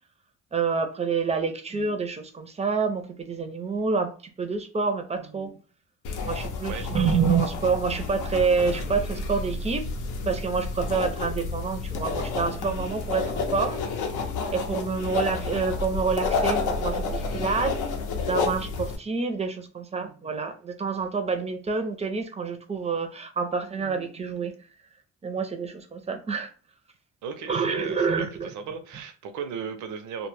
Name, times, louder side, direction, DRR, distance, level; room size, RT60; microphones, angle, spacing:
voice 1, 0.5-4.1 4.4-5.6 6.2-9.9 10.3-13.8 14.5-17.8 18.3-24.5 25.2-26.5 27.5-28.5, right 5 dB, 20° right, 0.4 m, -27 dB
sound 1, 6.0-19.0, left 4 dB, 85° left, 0.6 m, -30 dB
voice 2, 27.2-30.3, right 6 dB, 75° right, 0.6 m, -36 dB
2.1 x 2.0 x 3.1 m
cardioid pair, 90°, 30 cm